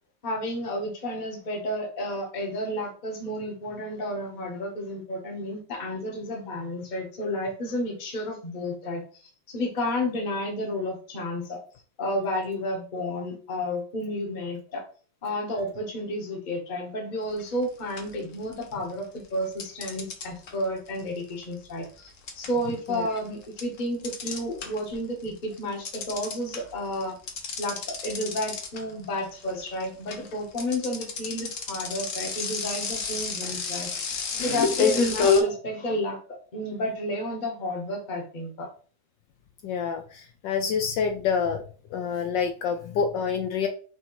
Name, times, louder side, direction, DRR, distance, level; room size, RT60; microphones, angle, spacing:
voice 1, 0.2-11.6 12.0-14.8 15.2-27.2 27.6-33.9 34.4-36.2 36.5-38.7, left 1 dB, 30° left, 0 dB, 0.9 m, -31 dB
sound 1, 17.4-17.6 18.0-18.9 19.6-25.0 25.3-35.4, left 5 dB, 55° left, 0.9 m, -29 dB
voice 2, 39.6-41.6 41.9-43.7, left 6 dB, 75° left, 4 dB, 1.1 m, -27 dB
6.0 x 2.8 x 3.1 m, 0.41 s
omnidirectional pair, 2.2 m